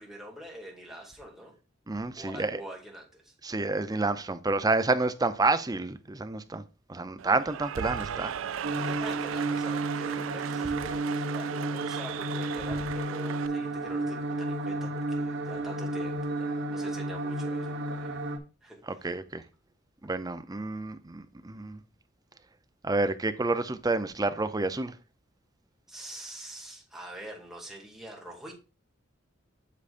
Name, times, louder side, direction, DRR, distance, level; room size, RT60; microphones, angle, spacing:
voice 1, 0.0-1.5 2.1-3.3 8.8-18.3 18.6-19.1 25.9-28.5, right 1 dB, ahead, 2.2 m, -45 dB
voice 2, 1.9-2.6 3.4-6.6 6.9-8.3 18.8-19.4 20.0-21.8 22.8-24.9, right 3 dB, 20° right, 0.6 m, -29 dB
Cheering / Applause, 7.2-13.5, right 8 dB, 80° right, 0.4 m, -37 dB
sound 1, 8.6-18.4, right 2 dB, 65° right, 1.3 m, -32 dB
8.3 x 6.9 x 2.5 m
head